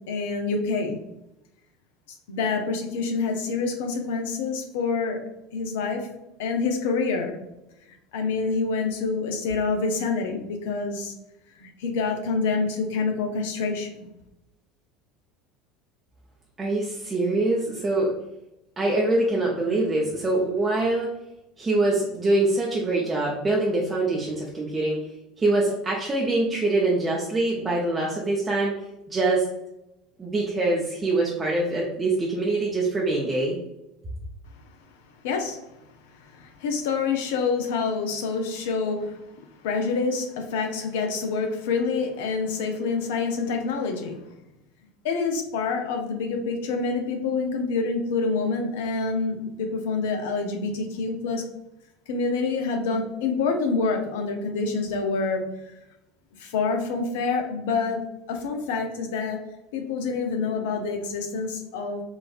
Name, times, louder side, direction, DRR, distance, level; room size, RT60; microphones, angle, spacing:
voice 1, 0.1-1.0 2.3-5.2 5.5-6.1 6.4-7.4 8.1-11.1 11.6-14.1 35.2-35.6 36.2-39.2 39.6-44.2 45.0-51.4 52.1-55.4 56.4-58.0 58.3-59.4 59.7-62.0, left 4 dB, 65° left, 4 dB, 0.6 m, -27 dB
voice 2, 16.6-18.1 18.8-21.1 21.6-25.0 25.4-28.8 29.1-29.5 30.2-33.6, right 2 dB, 20° right, -3 dB, 0.6 m, -24 dB
3.9 x 2.5 x 2.4 m, 0.90 s
figure-of-eight pair, 70°, 0 cm